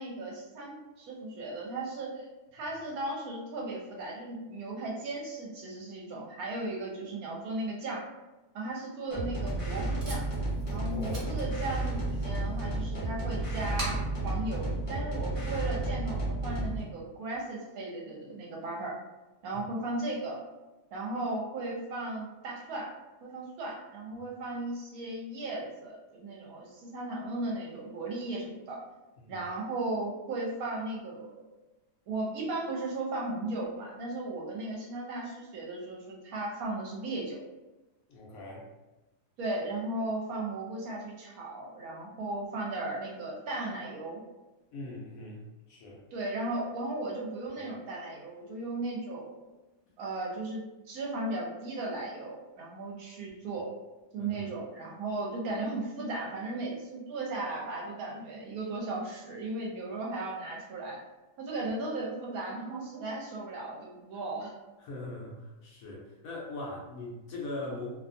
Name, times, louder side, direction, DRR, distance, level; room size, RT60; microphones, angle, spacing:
voice 1, 0.0-8.1 8.5-10.3 10.7-19.0 19.4-20.4 20.9-22.9 23.2-28.8 29.3-31.5 32.1-37.4 39.4-44.2 46.1-49.4 50.0-53.7 54.1-61.0 61.4-64.5, right 2 dB, 70° right, -2 dB, 1.0 m, -36 dB
sound 1, 9.1-16.8, right 2 dB, 35° left, 0.5 m, -32 dB
Packing tape duct tape, 9.1-15.6, equal, 30° right, 0.7 m, -46 dB
voice 2, 10.7-11.4 19.5-19.6 29.2-29.4 38.1-38.7 44.7-45.4 45.7-46.0 54.2-54.6 64.8-67.9, left 2 dB, 70° left, -2 dB, 0.9 m, -41 dB
2.7 x 2.2 x 2.5 m, 1.1 s
omnidirectional pair, 1.7 m